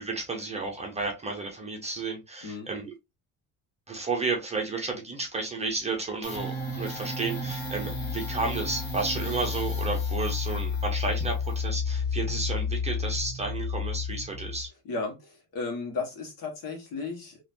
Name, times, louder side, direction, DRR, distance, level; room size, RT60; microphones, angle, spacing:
voice 1, 0.0-2.9 3.9-14.7, right 3 dB, 15° right, 0.8 m, -32 dB
sound 1, 6.2-14.7, left 4 dB, 40° left, 1.7 m, -31 dB
voice 2, 14.8-17.4, left 4 dB, 55° left, 1.6 m, -34 dB
4.0 x 3.0 x 2.7 m
cardioid pair, 155°, 39 cm